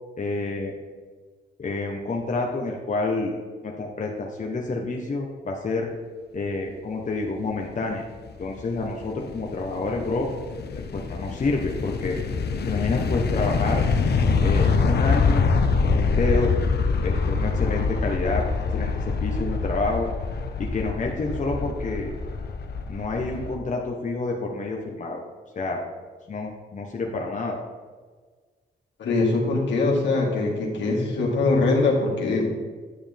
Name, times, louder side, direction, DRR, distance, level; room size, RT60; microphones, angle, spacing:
voice 1, 0.2-0.7 1.6-3.4 3.6-5.9 6.3-8.0 8.4-10.3 10.9-12.2 12.7-13.8 14.4-15.5 15.9-16.5 17.0-18.4 18.7-20.1 20.6-22.1 22.9-25.2 25.5-25.8 26.3-27.6, left 3 dB, 40° left, 0 dB, 1.1 m, -28 dB
sound 1, 8.1-23.6, left 4 dB, 65° left, 0.8 m, -25 dB
voice 2, 29.0-32.5, left 3 dB, 80° left, -2 dB, 2.0 m, -22 dB
9.7 x 7.0 x 3.5 m, 1.4 s
cardioid pair, 70°, 18 cm